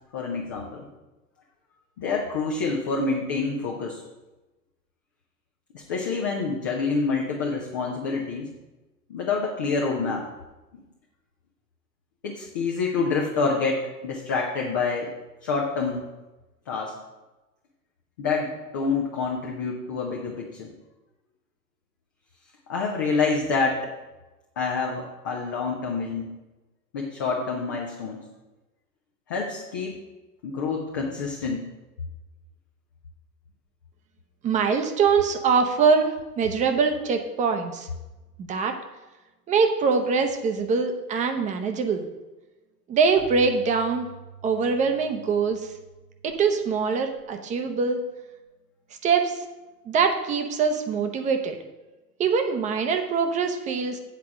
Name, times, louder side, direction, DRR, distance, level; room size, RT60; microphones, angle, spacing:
voice 1, 0.1-0.9 2.0-4.0 5.7-8.5 9.1-10.3 12.2-15.1 15.4-16.1 16.7-17.0 18.2-20.7 22.7-23.9 24.6-26.3 26.9-28.2 29.3-30.0 30.4-31.7, left 4 dB, 15° left, -1 dB, 0.3 m, -27 dB
voice 2, 34.4-37.9 38.4-38.7 39.5-42.0 42.9-44.1 44.4-45.6 46.2-48.0 49.0-49.4 49.9-51.6 52.2-54.0, right 5 dB, 15° right, 6 dB, 0.6 m, -23 dB
Keyboard (musical), 43.2-47.7, right 3 dB, 70° left, 1.3 m, -47 dB
8.2 x 4.6 x 7.4 m, 1.1 s
figure-of-eight pair, 95°, 47 cm